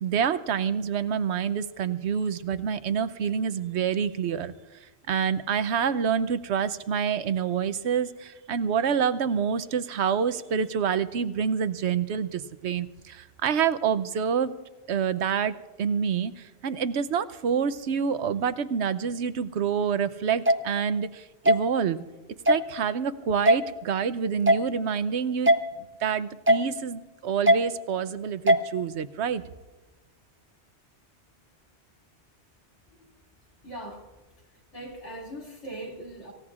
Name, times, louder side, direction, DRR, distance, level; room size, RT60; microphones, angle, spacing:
voice 1, 0.0-4.5 5.1-14.5 14.9-22.0 22.5-25.5 26.0-29.4, right 7 dB, 80° right, 12 dB, 1.0 m, -27 dB
sound 1, 20.5-20.6 21.5-21.6 22.5-22.6 23.5-23.6 24.5-24.6 25.5-25.6 26.5-26.6 27.5-27.6 28.5-28.6, equal, 15° right, 0.5 m, -18 dB
voice 2, 33.6-34.1 34.7-36.3, right 1 dB, 85° left, -1 dB, 2.9 m, -40 dB
26.5 x 16.0 x 2.4 m, 1.2 s
omnidirectional pair, 1.1 m